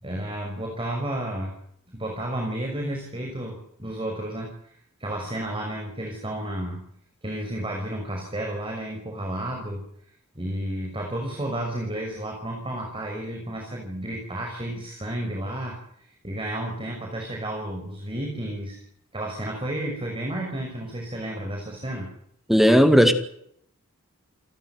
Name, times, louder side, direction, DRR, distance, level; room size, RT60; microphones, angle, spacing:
voice 1, 0.0-1.6 1.9-4.7 5.0-6.8 7.2-9.9 10.3-18.8 19.1-22.1, right 1 dB, 25° right, 1 dB, 5.8 m, -32 dB
voice 2, 22.5-23.1, equal, ahead, 8 dB, 2.1 m, -15 dB
29.0 x 15.0 x 9.6 m, 0.69 s
head